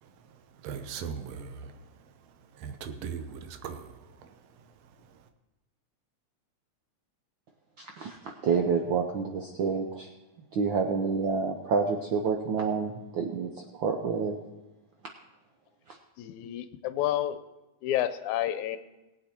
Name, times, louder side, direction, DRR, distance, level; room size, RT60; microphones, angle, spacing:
voice 1, 0.0-5.3, right 6 dB, 65° right, 1.9 m, -41 dB
voice 2, 7.8-10.1 10.5-14.4 15.9-16.0, right 5 dB, 90° right, 1.0 m, -28 dB
voice 3, 16.2-17.4 17.8-18.8, left 12 dB, 80° left, 2.1 m, -29 dB
18.5 x 8.5 x 4.4 m
omnidirectional pair, 3.4 m